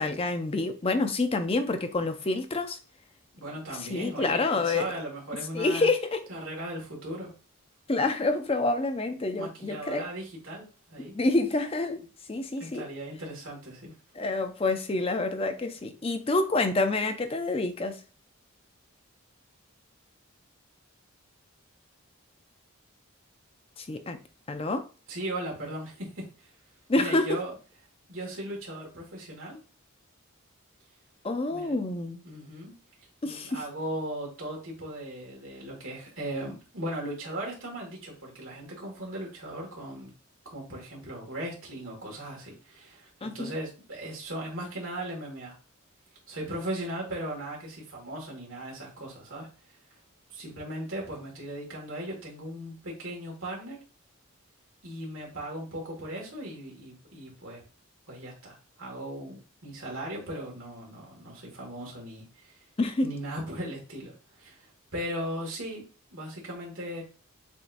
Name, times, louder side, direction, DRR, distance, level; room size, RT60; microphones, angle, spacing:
voice 1, 0.0-2.8 3.9-4.9 5.5-6.2 7.9-10.0 11.1-12.0 12.3-12.9 14.2-18.0 23.8-24.2 24.5-24.9 26.9-27.4 31.2-32.2 33.2-33.6 43.2-43.5 62.8-63.1, left 2 dB, 25° left, 0.5 m, -27 dB
voice 2, 3.4-5.9 6.3-7.3 9.4-11.1 12.6-14.0 25.1-26.5 26.9-27.5 28.1-29.6 31.5-31.8 32.2-32.7 33.0-40.1 40.5-45.6 46.3-50.0 50.3-53.8 54.8-57.6 58.1-62.6 63.0-65.8 66.1-67.0, right 1 dB, 70° right, 1.8 m, -38 dB
7.0 x 2.7 x 2.6 m
head